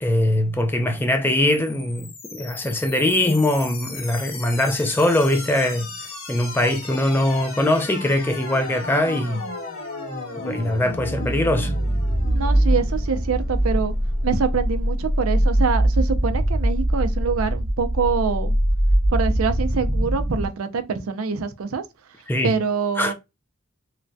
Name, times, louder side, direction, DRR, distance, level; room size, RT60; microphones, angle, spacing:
voice 1, 0.0-5.9 6.3-9.5 10.4-11.7 22.3-22.6 23.0-23.1, left 1 dB, 10° left, 0.4 m, -22 dB
sound 1, 1.5-20.5, equal, 70° left, 1.4 m, -25 dB
voice 2, 12.3-13.9 14.2-18.5 19.1-21.8 22.4-23.1, right 5 dB, 85° right, 0.5 m, -25 dB
3.1 x 2.2 x 2.6 m
head